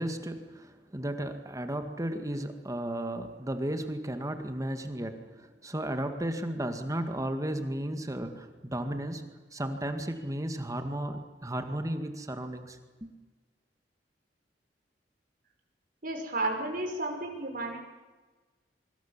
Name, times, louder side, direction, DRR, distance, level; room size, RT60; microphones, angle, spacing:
voice 1, 0.0-9.3 9.5-13.1, right 1 dB, 20° right, 7 dB, 2.1 m, -34 dB
voice 2, 16.0-17.8, right 2 dB, 55° right, 2 dB, 5.7 m, -32 dB
25.0 x 24.5 x 7.5 m, 1.3 s
head